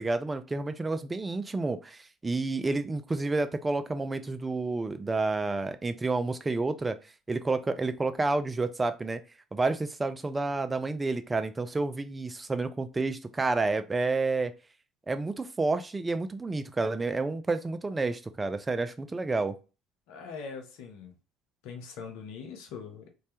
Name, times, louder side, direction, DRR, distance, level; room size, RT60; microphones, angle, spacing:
voice 1, 0.0-7.0 7.3-9.2 9.5-14.5 15.1-19.5, right 3 dB, 20° right, 0.3 m, -30 dB
voice 2, 20.1-21.1 21.6-23.1, left 5 dB, 65° left, 0.5 m, -42 dB
2.2 x 2.1 x 2.8 m
hypercardioid pair, 60°, 0 cm